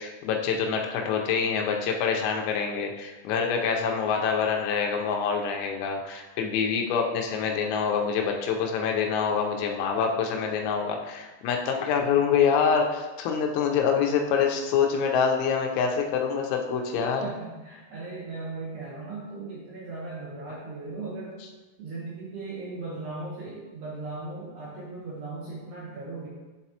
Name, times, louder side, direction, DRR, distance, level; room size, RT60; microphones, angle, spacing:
voice 1, 0.0-17.2, left 6 dB, 85° left, 1 dB, 3.4 m, -26 dB
voice 2, 17.2-21.5 21.8-26.3, right 3 dB, 70° right, -5 dB, 2.6 m, -37 dB
11.5 x 4.1 x 2.9 m, 1.2 s
omnidirectional pair, 6.0 m